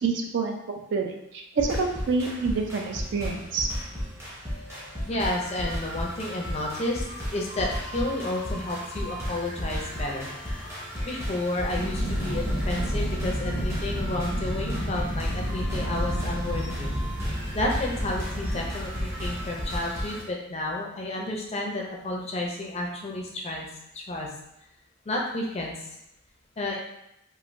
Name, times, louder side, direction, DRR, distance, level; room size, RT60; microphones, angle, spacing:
voice 1, 0.0-3.7, right 4 dB, 55° right, 3 dB, 0.4 m, -28 dB
sound 1, 1.6-20.2, equal, 10° right, 0.6 m, -34 dB
voice 2, 5.0-10.3 11.0-16.9 17.2-23.7 23.9-24.3 25.1-25.8 26.6-26.8, left 1 dB, 30° left, -1 dB, 0.4 m, -31 dB
sound 2, 11.7-19.5, equal, 85° right, 1.0 m, -31 dB
3.1 x 2.4 x 2.5 m, 0.81 s
head